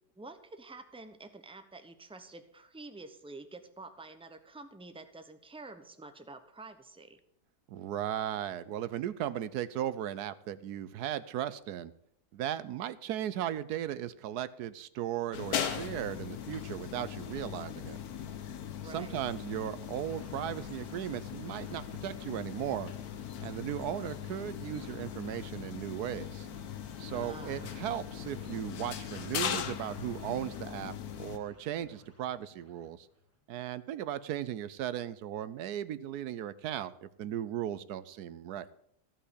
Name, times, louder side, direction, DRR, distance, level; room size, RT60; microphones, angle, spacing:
voice 1, 0.2-7.2 18.8-19.2 27.1-27.7, right 3 dB, 5° right, 8 dB, 0.6 m, -48 dB
voice 2, 7.7-11.9 12.3-18.0 18.8-22.9 23.4-26.5 27.0-33.1 33.5-38.7, right 11 dB, 75° right, 15 dB, 1.2 m, -37 dB
sound 1, 15.3-31.4, left 9 dB, 70° left, 1.3 m, -39 dB
sound 2, 19.8-33.7, equal, 10° left, 1.0 m, -60 dB
15.0 x 5.7 x 8.2 m, 0.71 s
omnidirectional pair, 1.7 m